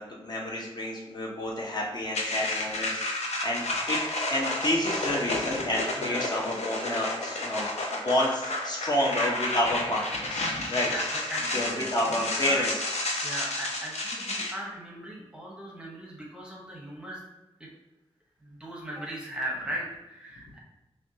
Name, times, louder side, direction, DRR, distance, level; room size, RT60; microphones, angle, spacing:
voice 1, 0.0-4.0 4.3-10.9 11.5-12.7, left 1 dB, 40° left, -3 dB, 0.7 m, -29 dB
sound 1, 2.1-14.5, left 2 dB, 90° left, 0.6 m, -31 dB
voice 2, 6.0-6.4 9.1-9.5 10.8-12.7 13.2-17.2 17.6-17.7 18.4-20.6, right 1 dB, 10° right, -3 dB, 0.8 m, -38 dB
5.7 x 2.2 x 2.7 m, 1.0 s
wide cardioid pair, 115°, 11 cm